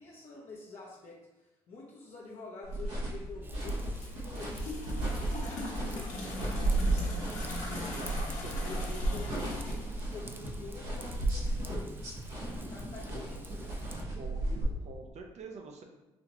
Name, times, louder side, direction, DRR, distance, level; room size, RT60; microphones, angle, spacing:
voice 1, 0.0-7.3 8.1-12.0 12.7-14.7, left 3 dB, 55° left, -5 dB, 0.7 m, -48 dB
sound 1, 2.6-14.6, right 1 dB, 85° right, 1.2 m, -34 dB
Raindrop / Vehicle horn car horn honking / Trickle dribble, 3.4-14.0, right 2 dB, 15° right, 0.4 m, -51 dB
sound 2, 3.6-10.7, left 2 dB, 75° left, 1.1 m, -42 dB
voice 2, 7.7-8.6 14.2-14.4 14.9-15.8, right 4 dB, 60° right, 3 dB, 0.6 m, -46 dB
4.1 x 2.9 x 2.9 m, 1.0 s
supercardioid pair, 55°, 13 cm